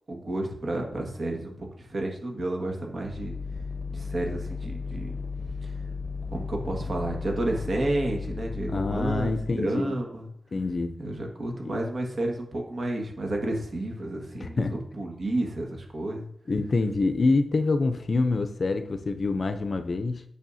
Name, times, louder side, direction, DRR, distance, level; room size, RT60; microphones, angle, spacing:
voice 1, 0.1-3.3 3.9-5.1 5.6-5.7 6.3-9.4 9.6-10.3 11.0-16.3, right 1 dB, 50° right, 1 dB, 1.6 m, -31 dB
sound 1, 3.0-9.6, left 4 dB, 15° left, 0.9 m, -35 dB
voice 2, 8.7-9.9 10.5-11.0 11.6-11.8 14.4-14.8 16.5-20.2, left 3 dB, 45° left, 8 dB, 0.6 m, -26 dB
9.0 x 6.3 x 2.7 m, 0.66 s
wide cardioid pair, 145°, 0 cm